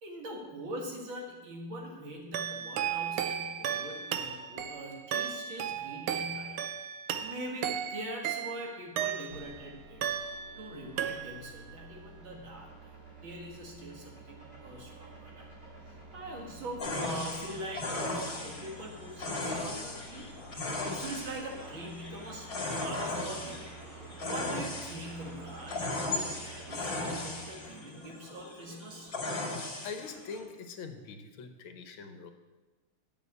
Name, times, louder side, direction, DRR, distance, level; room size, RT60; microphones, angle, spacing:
voice 1, 0.0-6.6 7.2-10.0 10.6-15.5 16.1-20.3 20.8-23.7 24.2-29.1, right 1 dB, 65° right, 0 dB, 2.6 m, -42 dB
sound 1, 2.3-9.6 10.0-10.7 11.0-11.6, right 9 dB, 85° right, 1.6 m, -35 dB
sound 2, 9.3-27.5, right 2 dB, 45° right, 4.1 m, -50 dB
sound 3, 16.8-30.4, left 2 dB, 40° left, 2.6 m, -37 dB
voice 2, 29.8-32.3, left 5 dB, 75° left, 7 dB, 1.7 m, -43 dB
8.0 x 7.0 x 8.3 m, 1.2 s
omnidirectional pair, 2.3 m